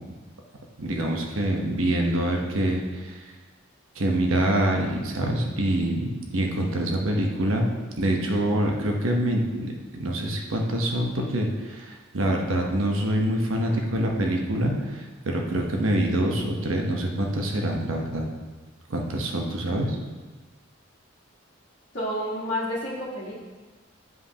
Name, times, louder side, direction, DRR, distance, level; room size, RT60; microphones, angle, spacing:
voice 1, 0.8-3.1 4.0-18.3 18.9-20.0, right 1 dB, 85° right, 1 dB, 0.9 m, -25 dB
voice 2, 21.9-23.3, left 1 dB, 55° left, -11 dB, 1.4 m, -29 dB
7.8 x 5.1 x 2.8 m, 1.3 s
head